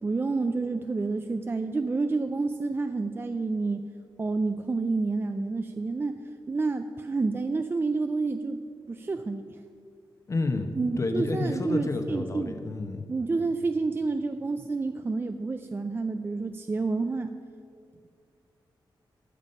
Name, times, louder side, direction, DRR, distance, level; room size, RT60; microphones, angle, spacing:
voice 1, 0.0-3.8 4.2-6.2 6.5-8.6 8.9-9.6 10.8-12.6 13.1-17.3, right 3 dB, 25° right, 8 dB, 0.4 m, -29 dB
voice 2, 10.3-10.7 11.0-13.0, left 2 dB, 35° left, 6 dB, 1.0 m, -29 dB
13.5 x 7.1 x 5.6 m, 2.4 s
wide cardioid pair, 130°, 9 cm